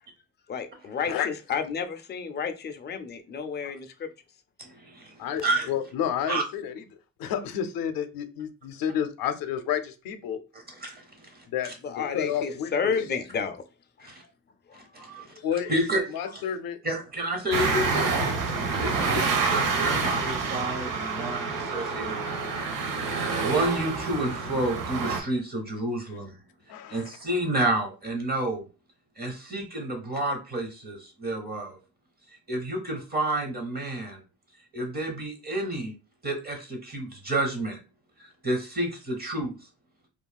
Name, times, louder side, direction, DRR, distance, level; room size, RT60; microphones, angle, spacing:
voice 1, 0.5-4.1 11.8-13.6 14.0-14.1 14.7-14.8 15.2-15.5 16.2-16.3 19.0-19.1 19.4-19.5, left 6 dB, 30° left, 7 dB, 0.4 m, -31 dB
voice 2, 4.6-5.7 6.3-6.4 10.5-11.7 14.0-14.2 14.7-16.0 16.3-16.4 16.8-18.1 18.4-22.2 23.4-26.4 26.9-28.7 29.2-31.8 32.5-34.2 34.7-35.9 36.2-37.8 38.2-39.6, right 1 dB, 30° right, 4 dB, 0.8 m, -30 dB
voice 3, 5.2-6.8 7.2-10.4 11.5-13.1 15.4-16.8 26.7-27.0, left 9 dB, 85° left, 8 dB, 0.5 m, -30 dB
sound 1, 17.5-25.2, right 4 dB, 75° right, 0.7 m, -27 dB
3.0 x 2.3 x 2.2 m, 0.32 s
cardioid pair, 115°, 34 cm